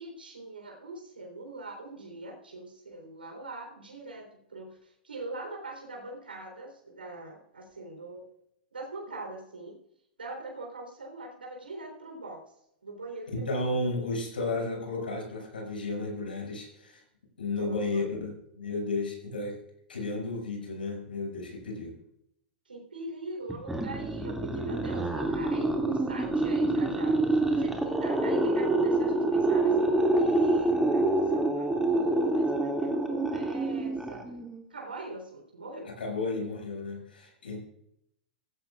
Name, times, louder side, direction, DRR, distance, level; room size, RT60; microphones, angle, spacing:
voice 1, 0.0-8.3 8.7-9.8 10.2-12.5 12.8-13.8 17.6-18.1 22.7-34.2 34.7-35.9, right 2 dB, 90° right, 1 dB, 3.8 m, -42 dB
voice 2, 13.3-17.0 17.4-19.6 19.9-21.9 36.0-37.6, left 2 dB, 85° left, 0 dB, 6.3 m, -33 dB
sound 1, 23.5-34.6, right 2 dB, 5° right, 2.4 m, -27 dB
16.0 x 16.0 x 2.5 m, 0.76 s
hypercardioid pair, 100°, 5 cm